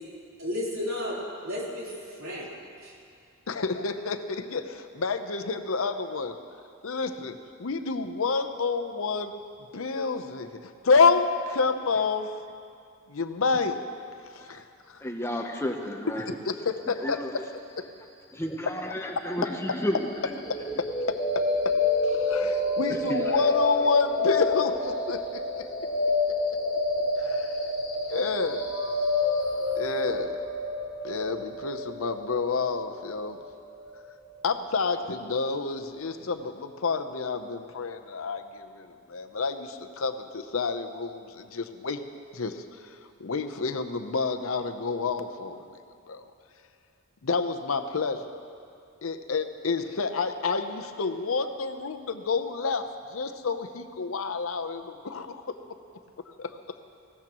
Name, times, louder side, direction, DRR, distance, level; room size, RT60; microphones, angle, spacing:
voice 1, 0.4-2.5 2.8-2.9, left 1 dB, 70° right, -6 dB, 3.7 m, -33 dB
voice 2, 3.5-6.4 6.8-9.4 9.7-10.6 10.8-12.3 13.1-13.8 14.5-15.0 16.2-16.8 17.1-17.2 20.8-21.8 22.1-25.7 27.2-27.5 28.1-28.7 29.8-30.4 31.0-33.4 34.4-42.0 42.3-42.6 43.2-45.6 46.1-46.2 47.2-48.3 49.0-52.8 53.1-55.6 56.4-56.5, left 4 dB, 75° left, 7 dB, 0.7 m, -29 dB
voice 3, 15.0-16.4 17.0-17.4 18.3-20.5 22.9-23.4, left 1 dB, 10° left, 3 dB, 0.7 m, -32 dB
sound 1, 20.4-34.4, left 2 dB, 30° left, 2.7 m, -28 dB
19.5 x 16.5 x 3.0 m, 2.4 s
head